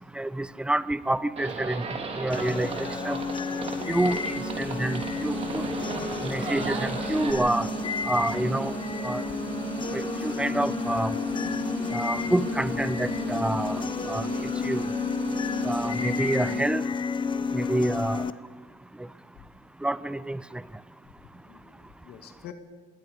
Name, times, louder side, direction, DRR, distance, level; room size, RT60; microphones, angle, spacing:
voice 1, 0.2-1.8 2.2-2.7 3.0-3.2 3.9-5.6 6.2-7.7 8.1-8.7 9.0-9.2 9.9-11.1 11.9-14.3 14.6-14.8 15.6-16.8 17.5-18.2 19.8-20.4, right 1 dB, 5° right, 16 dB, 0.7 m, -28 dB
Livestock farm animals working animals, 1.4-7.3, right 4 dB, 35° right, 3.3 m, -36 dB
sound 1, 2.3-18.3, left 5 dB, 30° left, 0.8 m, -31 dB
sound 2, 3.8-16.6, right 7 dB, 90° right, 3.0 m, -37 dB
voice 2, 21.4-22.5, left 10 dB, 70° left, 6 dB, 2.2 m, -48 dB
26.5 x 20.5 x 5.3 m, 1.5 s
cardioid pair, 110°, 17 cm